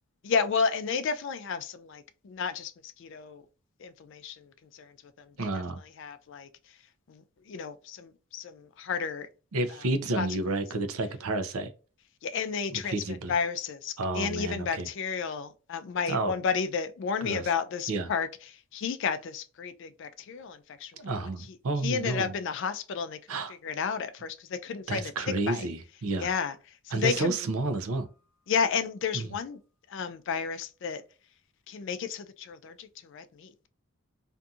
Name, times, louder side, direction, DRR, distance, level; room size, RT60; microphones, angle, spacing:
voice 1, 0.2-2.7 3.0-3.4 3.8-4.5 4.7-4.9 5.4-5.5 6.0-6.5 7.1-7.2 7.5-9.3 10.2-10.3 12.2-20.9 21.8-23.2 23.6-25.1 25.5-25.6 26.2-26.6 26.9-27.3 28.5-29.6 29.9-31.0 31.7-33.5, left 6 dB, 55° left, 0.3 m, -32 dB
voice 2, 5.4-5.8 9.5-11.7 12.7-13.3 14.0-14.9 16.1-16.3 17.2-17.5 17.9-18.1 21.0-22.3 23.3-23.5 24.9-26.3 26.9-28.1 29.1-29.3, right 2 dB, 75° right, 0.5 m, -30 dB
sound 1, 27.1-28.2, right 5 dB, 5° left, 0.7 m, -50 dB
2.6 x 2.3 x 2.6 m
head